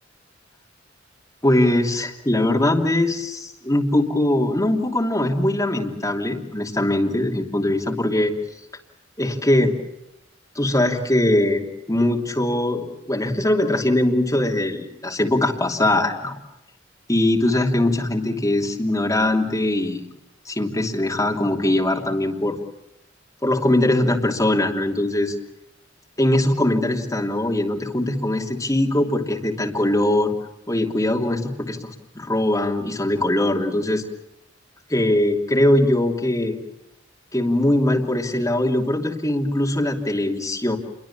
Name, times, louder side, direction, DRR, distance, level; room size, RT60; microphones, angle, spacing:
voice 1, 1.4-8.3 9.2-9.7 10.5-16.4 17.1-20.1 20.5-22.6 23.4-25.3 26.2-30.3 30.7-34.0 34.9-36.6 37.3-40.8, left 1 dB, 20° left, 0 dB, 3.0 m, -21 dB
27.5 x 23.0 x 7.3 m, 0.84 s
head